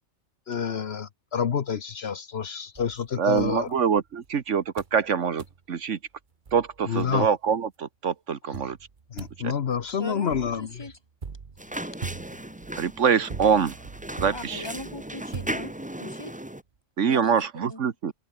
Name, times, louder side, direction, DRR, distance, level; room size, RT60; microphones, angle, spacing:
voice 1, 0.5-3.7 6.9-7.3 9.1-10.9, left 7 dB, 55° left, 1.1 m, -28 dB
sound 1, 2.7-4.3 4.8-5.0 5.4-5.6 6.1-6.2 6.5-7.6 8.5-16.1, right 5 dB, 40° right, 1.4 m, -42 dB
voice 2, 3.2-6.0 6.5-8.8 12.8-13.8 14.2-14.6 17.0-18.1, right 7 dB, 70° right, 1.6 m, -24 dB
voice 3, 10.0-10.9 14.3-15.7 16.0-16.3 17.1-17.3 17.7-17.8, left 1 dB, 20° left, 2.0 m, -39 dB
sound 2, 11.6-16.6, right 1 dB, 5° right, 1.3 m, -37 dB
omnidirectional pair, 1.3 m